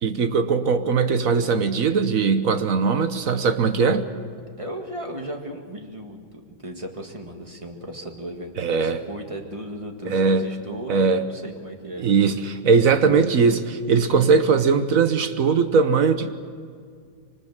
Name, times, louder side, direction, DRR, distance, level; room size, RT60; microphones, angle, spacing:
voice 1, 0.0-4.1 8.6-9.0 10.1-10.5 10.9-11.2 12.0-16.4, right 5 dB, 50° right, 9 dB, 1.3 m, -20 dB
voice 2, 4.6-12.1, right 1 dB, 15° right, 3 dB, 1.7 m, -36 dB
23.5 x 19.5 x 7.4 m, 2.1 s
omnidirectional pair, 2.1 m